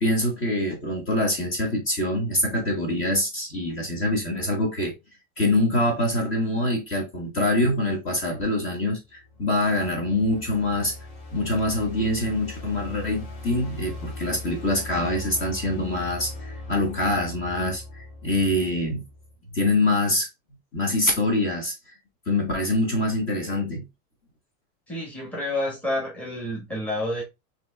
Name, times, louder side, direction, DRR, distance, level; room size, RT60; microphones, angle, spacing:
voice 1, 0.0-4.9 5.4-9.0 9.4-11.0 11.3-19.0 19.5-20.3 20.7-21.7 22.3-23.8, left 1 dB, 30° left, 1.4 m, -24 dB
sound 1, 9.1-19.4, left 2 dB, 45° left, 1.6 m, -39 dB
voice 2, 24.9-27.2, left 1 dB, 5° left, 1.3 m, -29 dB
5.8 x 3.1 x 2.3 m
supercardioid pair, 145°, 43 cm